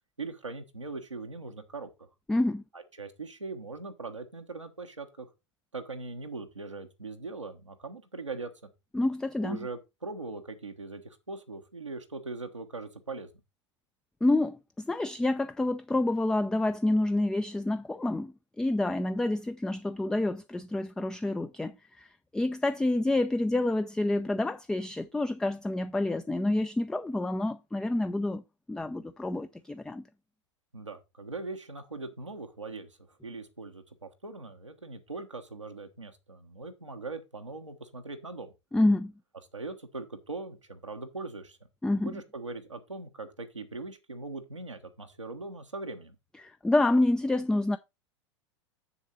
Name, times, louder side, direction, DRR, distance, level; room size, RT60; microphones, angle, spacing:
voice 1, 0.2-2.1 2.7-5.3 5.7-8.5 9.4-13.3 30.7-38.5 39.5-41.6 42.0-46.2, right 3 dB, 85° right, 1.2 m, -40 dB
voice 2, 2.3-2.6 8.9-9.6 14.2-28.4 28.7-30.0 38.7-39.1 41.8-42.1 46.4-47.8, left 2 dB, 5° left, 0.4 m, -28 dB
7.2 x 7.0 x 4.1 m
figure-of-eight pair, 85°, 15 cm